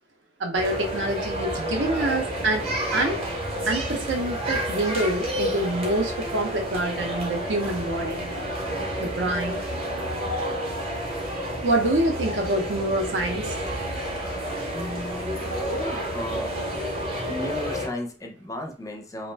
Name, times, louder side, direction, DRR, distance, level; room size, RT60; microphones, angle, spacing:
voice 1, 0.4-3.2 3.7-8.3 9.0-9.6 11.6-13.5, right 1 dB, 80° right, 3 dB, 0.6 m, -26 dB
sound 1, 0.5-17.9, equal, 35° right, 0.7 m, -30 dB
voice 2, 14.7-16.6 17.3-19.3, left 1 dB, 20° left, 3 dB, 0.4 m, -35 dB
2.4 x 2.1 x 3.2 m, 0.39 s
head